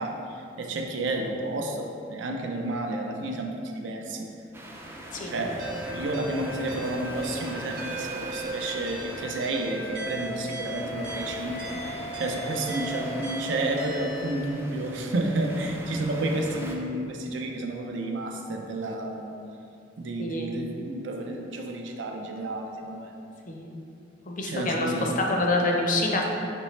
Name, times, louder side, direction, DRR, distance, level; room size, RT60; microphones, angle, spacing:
voice 1, 0.0-4.3 5.2-5.6 5.9-19.3 20.0-23.1 24.5-25.1, right 2 dB, 75° right, 2 dB, 0.5 m, -31 dB
sound 1, 4.5-16.8, right 1 dB, 15° right, 0.3 m, -41 dB
sound 2, 5.6-14.3, equal, 50° right, 0.9 m, -37 dB
voice 2, 20.2-20.5 23.5-23.6 24.3-26.2, left 2 dB, 45° left, 0 dB, 0.5 m, -26 dB
5.1 x 3.1 x 3.2 m, 2.7 s
head